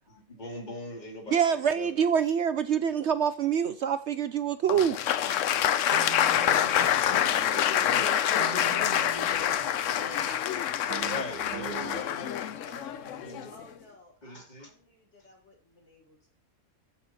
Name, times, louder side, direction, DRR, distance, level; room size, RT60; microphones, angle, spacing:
voice 1, 0.1-1.9 6.2-8.2 8.5-8.7 9.5-9.7 11.0-13.5 14.2-14.7, left 1 dB, 30° left, 2.7 m, -41 dB
voice 2, 1.3-5.0, right 8 dB, 60° right, 0.8 m, -25 dB
Applause, 4.7-13.6, left 10 dB, 65° left, 0.9 m, -26 dB
sound 1, 5.3-12.0, right 10 dB, 80° right, 1.1 m, -44 dB
voice 3, 7.0-10.6, left 4 dB, 85° left, 2.1 m, -41 dB
voice 4, 13.5-16.3, left 2 dB, 50° left, 4.8 m, -55 dB
15.0 x 5.7 x 4.2 m
omnidirectional pair, 1.5 m